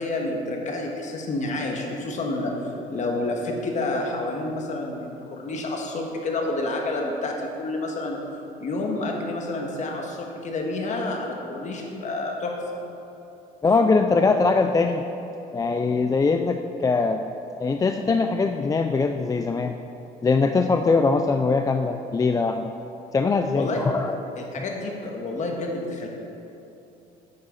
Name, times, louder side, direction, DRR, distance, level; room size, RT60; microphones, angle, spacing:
voice 1, 0.0-2.5 2.9-8.2 8.6-12.6 23.5-23.8 24.4-26.1, left 2 dB, 45° left, 1 dB, 1.6 m, -29 dB
voice 2, 13.6-15.0 15.5-17.2 17.6-19.8 20.2-22.6 23.1-24.2, left 4 dB, 20° left, 6 dB, 0.4 m, -22 dB
9.7 x 8.8 x 4.1 m, 2.9 s
cardioid pair, 110°, 17 cm